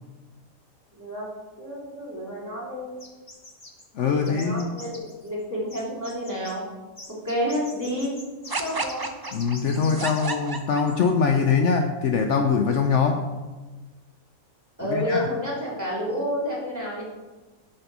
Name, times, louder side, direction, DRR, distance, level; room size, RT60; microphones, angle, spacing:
voice 1, 0.9-1.3 1.6-2.9 4.0-6.6 7.2-8.1 8.6-9.1 14.8-17.0, equal, 10° right, -6 dB, 3.0 m, -30 dB
sound 1, 3.0-3.8 4.3-5.4 5.7-6.5 7.0-10.6 10.9-11.0, left 2 dB, 25° left, 1.4 m, -44 dB
voice 2, 3.9-4.7 9.3-13.3 14.8-15.3, left 5 dB, 65° left, 4 dB, 0.9 m, -23 dB
sound 2, 8.5-11.3, right 3 dB, 35° right, 0.3 m, -31 dB
7.9 x 6.6 x 6.1 m, 1.2 s
omnidirectional pair, 1.5 m